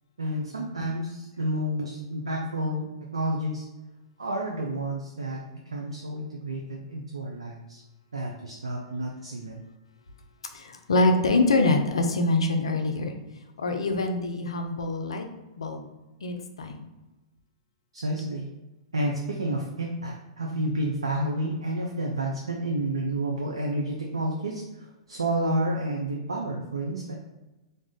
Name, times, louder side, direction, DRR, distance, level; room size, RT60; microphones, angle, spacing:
voice 1, 0.2-3.7 4.2-5.4 5.7-7.8 8.1-9.6 17.9-18.4 18.9-27.2, right 1 dB, 85° right, 0 dB, 0.4 m, -30 dB
voice 2, 10.5-13.1 13.6-15.3 15.6-15.9 16.2-16.9, left 2 dB, 75° left, 5 dB, 0.4 m, -25 dB
2.5 x 2.3 x 3.5 m, 1.1 s
figure-of-eight pair, 110°, 3 cm